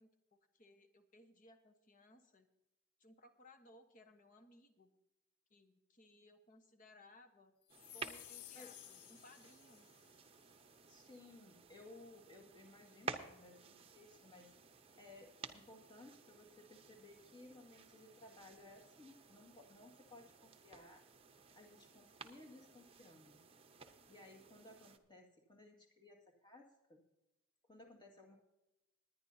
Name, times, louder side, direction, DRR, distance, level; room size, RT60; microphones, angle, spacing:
voice 1, 0.0-2.5 3.0-4.9 5.5-7.5 7.9-9.9, left 1 dB, 35° left, 7 dB, 1.1 m, -63 dB
sound 1, 7.7-10.2, left 15 dB, 75° left, 0.4 m, -56 dB
sound 2, 7.7-25.0, right 4 dB, 25° right, 0.8 m, -54 dB
voice 2, 10.9-14.5 15.0-21.0 21.5-23.4 23.8-27.0 27.6-28.4, left 2 dB, 20° left, 0 dB, 2.0 m, -59 dB
20.5 x 10.0 x 2.8 m, 0.95 s
head